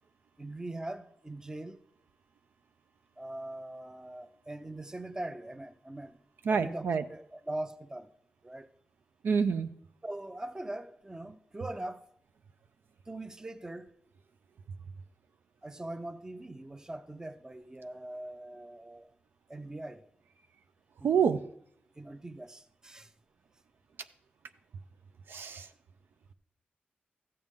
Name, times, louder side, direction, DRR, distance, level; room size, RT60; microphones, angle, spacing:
voice 1, 0.4-1.8 3.2-6.2 6.5-8.1 8.4-8.7 10.0-12.0 13.1-13.9 15.6-19.1 19.5-20.0 21.0-21.5 22.0-23.1, right 1 dB, 15° right, 0.6 m, -41 dB
voice 2, 6.5-7.0 9.2-9.7 21.0-21.4 25.3-25.7, right 6 dB, 80° right, 0.5 m, -27 dB
13.5 x 7.8 x 3.6 m
wide cardioid pair, 95°, 4 cm